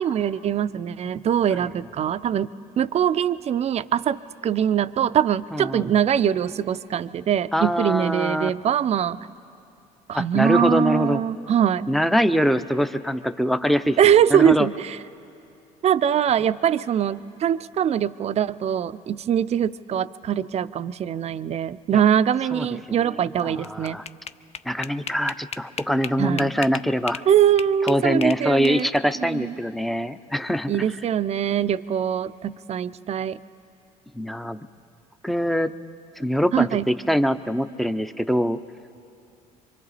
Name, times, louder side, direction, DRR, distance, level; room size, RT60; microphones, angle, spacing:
voice 1, 0.0-2.5 2.8-9.2 10.1-11.9 14.0-15.0 15.8-24.0 26.2-26.5 27.3-28.9 29.2-29.5 30.7-33.4 36.5-36.9, right 9 dB, 40° right, 14 dB, 0.5 m, -22 dB
voice 2, 5.5-5.9 7.5-8.5 10.1-11.2 11.9-14.7 21.9-22.0 22.5-23.1 23.4-24.0 24.6-27.2 27.8-30.9 34.2-34.6 35.2-35.7 36.2-38.6, equal, ahead, 11 dB, 0.6 m, -23 dB
sound 1, 23.4-27.3 27.6-29.1, left 8 dB, 40° left, 0.5 m, -35 dB
26.5 x 24.0 x 4.1 m, 2.7 s
supercardioid pair, 85°, 16 cm